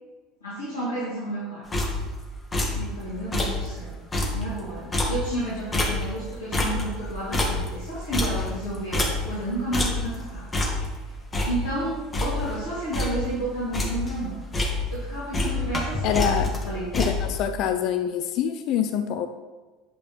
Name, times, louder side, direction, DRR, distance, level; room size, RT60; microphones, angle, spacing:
voice 1, 0.4-1.6 2.7-4.0 4.3-10.5 10.9-11.0 11.5-14.4 14.9-16.9, right 1 dB, 80° left, -12 dB, 3.0 m, -31 dB
sound 1, 1.7-2.2 2.5-2.9 3.2-3.7 4.0-6.3 6.5-9.5 9.7-10.2 10.5-11.0 11.3-12.6 12.9-13.3 13.6-14.2 14.5-15.1 15.3-17.4, left 2 dB, 20° left, 1.7 m, -27 dB
voice 2, 16.0-16.5 16.9-19.3, left 9 dB, 50° left, 9 dB, 0.5 m, -25 dB
9.2 x 4.9 x 5.7 m, 1.3 s
figure-of-eight pair, 70°, 0 cm